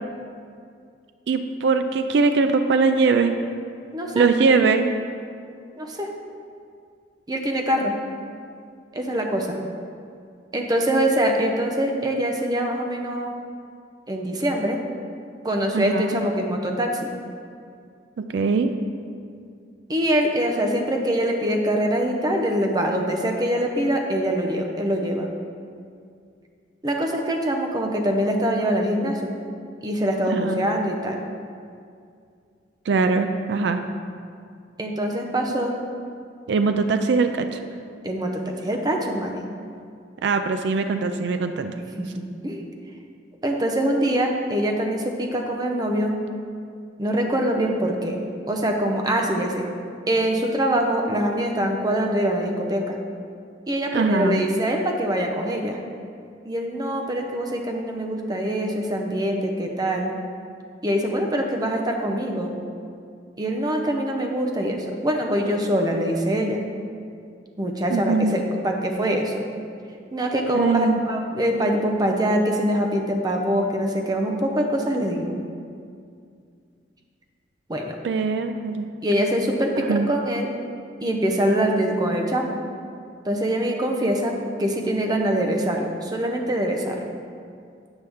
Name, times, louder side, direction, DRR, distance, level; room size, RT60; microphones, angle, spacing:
voice 1, 1.3-3.4 4.1-4.9 15.7-16.2 18.2-18.7 30.3-30.6 32.9-33.8 36.5-37.6 40.2-41.8 53.9-54.4 67.9-68.3 70.5-71.0 78.0-78.9 79.8-80.1, right 4 dB, 65° right, 8 dB, 0.3 m, -21 dB
voice 2, 3.9-4.3 5.8-6.1 7.3-7.9 8.9-9.6 10.5-13.3 14.1-14.8 15.4-17.1 19.9-25.3 26.8-29.3 29.8-31.2 34.8-35.7 38.0-38.3 38.6-39.4 41.7-42.6 43.4-46.2 47.0-48.2 48.5-49.6 50.1-53.0 53.7-55.8 56.4-60.1 60.8-62.6 63.4-66.6 67.6-69.5 70.1-75.4 77.7-77.9 79.0-80.5 81.0-82.6 83.2-87.1, right 1 dB, 20° right, 2 dB, 0.6 m, -24 dB
7.9 x 5.6 x 3.5 m, 2.3 s
head